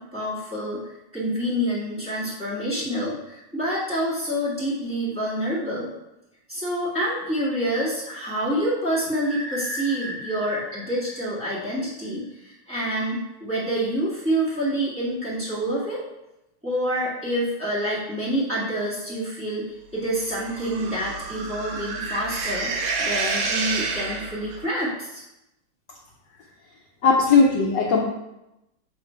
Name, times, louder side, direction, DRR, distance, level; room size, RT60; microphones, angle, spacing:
voice 1, 0.1-0.8 1.1-5.9 6.5-16.0 16.6-19.6 19.9-25.2, right 1 dB, 5° right, -9 dB, 1.7 m, -27 dB
sound 1, 9.2-12.1, equal, 30° right, 1.4 m, -36 dB
sound 2, 20.3-24.6, right 3 dB, 60° right, 1.1 m, -29 dB
voice 2, 27.0-28.0, left 4 dB, 70° left, -1 dB, 1.2 m, -18 dB
6.9 x 3.1 x 4.5 m, 0.91 s
omnidirectional pair, 2.3 m